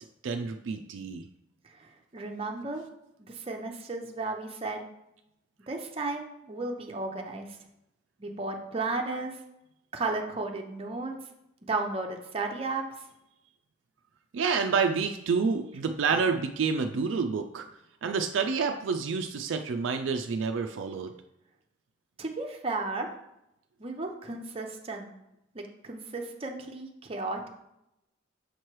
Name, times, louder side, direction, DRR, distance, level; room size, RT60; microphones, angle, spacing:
voice 1, 0.2-1.2 14.3-17.6 18.0-21.1, right 5 dB, 70° right, 6 dB, 0.4 m, -28 dB
voice 2, 1.8-2.8 3.2-4.9 5.7-7.5 8.2-9.4 9.9-11.1 11.7-12.8 16.1-16.2 22.2-23.1 23.8-25.1 25.5-27.5, right 3 dB, 30° right, 2 dB, 0.7 m, -34 dB
6.6 x 3.1 x 4.6 m, 0.85 s
head